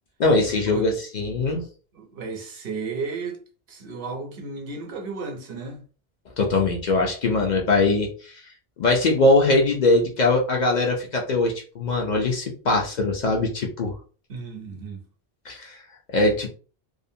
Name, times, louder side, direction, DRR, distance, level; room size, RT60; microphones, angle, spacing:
voice 1, 0.2-1.6 6.4-8.4 8.8-13.9 15.5-15.8 16.1-16.5, left 2 dB, 55° left, 0.6 m, -21 dB
voice 2, 1.9-3.4 3.7-5.8 14.3-15.0, right 4 dB, 70° right, 0.8 m, -33 dB
2.5 x 2.0 x 2.6 m
omnidirectional pair, 1.0 m